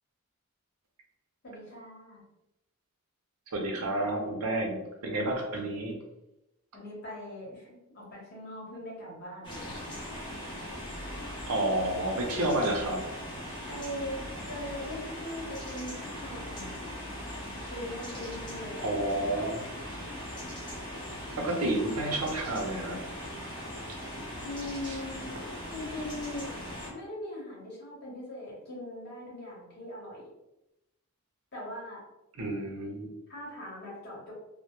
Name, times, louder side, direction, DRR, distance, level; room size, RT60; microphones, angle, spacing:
voice 1, 1.4-2.2 6.7-9.8 13.7-17.0 17.7-18.9 19.2-19.5 24.4-25.3 25.7-26.6 26.9-30.3 31.5-32.0 33.3-34.3, left 1 dB, 45° left, -5 dB, 0.9 m, -41 dB
voice 2, 3.5-6.0 11.5-13.0 18.8-19.6 21.4-23.0 24.9-25.0 32.4-33.1, right 1 dB, 75° right, 1 dB, 0.6 m, -30 dB
sound 1, 9.4-26.9, equal, 20° left, 0.6 m, -40 dB
2.1 x 2.0 x 2.9 m, 0.90 s
head